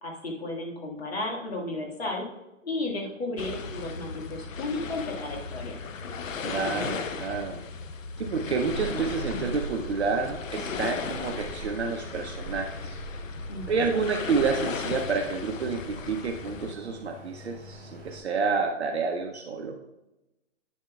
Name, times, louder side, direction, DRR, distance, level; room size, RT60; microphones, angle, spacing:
voice 1, 0.0-2.3 2.6-5.8 13.5-13.9, left 2 dB, 50° left, -1 dB, 1.9 m, -33 dB
sound 1, 3.4-16.7, left 5 dB, 80° left, 0.8 m, -36 dB
voice 2, 6.4-7.6 8.2-13.0 13.7-19.8, right 4 dB, 55° right, 2 dB, 0.8 m, -29 dB
sound 2, 8.5-18.2, right 2 dB, 15° right, 2.1 m, -43 dB
9.3 x 7.2 x 2.3 m, 0.98 s
hypercardioid pair, 175°, 38 cm